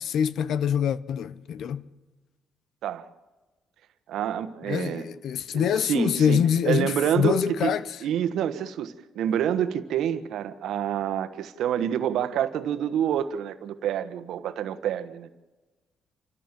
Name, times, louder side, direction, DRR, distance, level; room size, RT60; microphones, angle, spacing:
voice 1, 0.0-1.8 4.7-7.8, left 8 dB, 70° left, 0.9 m, -25 dB
voice 2, 4.1-5.1 5.5-7.7 8.0-15.3, right 9 dB, 80° right, 1.3 m, -27 dB
28.5 x 14.0 x 7.6 m
cardioid pair, 90°, 0 cm